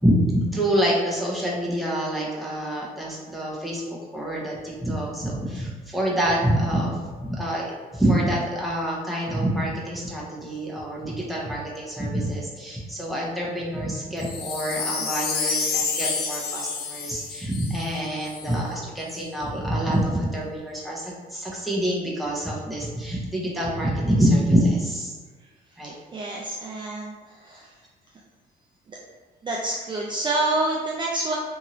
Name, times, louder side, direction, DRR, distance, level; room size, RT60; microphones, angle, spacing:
voice 1, 0.0-3.8 4.1-25.1 25.8-25.9, equal, ahead, -5 dB, 0.7 m, -26 dB
Wind chime, 14.2-18.6 19.1-19.2, left 5 dB, 65° left, 0.6 m, -29 dB
voice 2, 26.1-27.2 27.4-27.7 29.4-31.4, right 2 dB, 30° right, -3 dB, 0.4 m, -27 dB
2.8 x 2.5 x 2.9 m, 1.3 s
cardioid pair, 110°, 17 cm